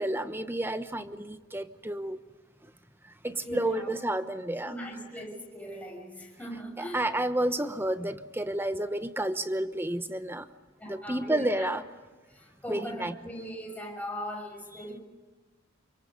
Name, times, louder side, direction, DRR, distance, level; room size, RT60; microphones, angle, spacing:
voice 1, 0.0-2.2 3.2-4.8 6.8-10.5 10.9-11.8 12.7-13.1 14.7-14.8, right 1 dB, 10° right, 10 dB, 1.1 m, -30 dB
voice 2, 3.2-3.9 4.6-7.1 10.8-11.6 12.3-15.0, equal, 5° left, 0 dB, 6.4 m, -39 dB
29.0 x 25.5 x 5.5 m, 1.3 s
head